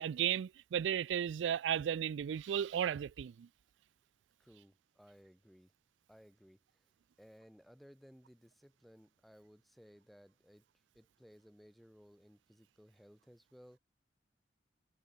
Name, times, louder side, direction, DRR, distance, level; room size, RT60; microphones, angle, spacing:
voice 1, 0.0-3.5, right 9 dB, 85° right, 0.3 m, -34 dB
voice 2, 4.4-5.7 6.1-6.6 7.2-10.7 10.9-13.8, equal, ahead, 3.7 m, -60 dB
head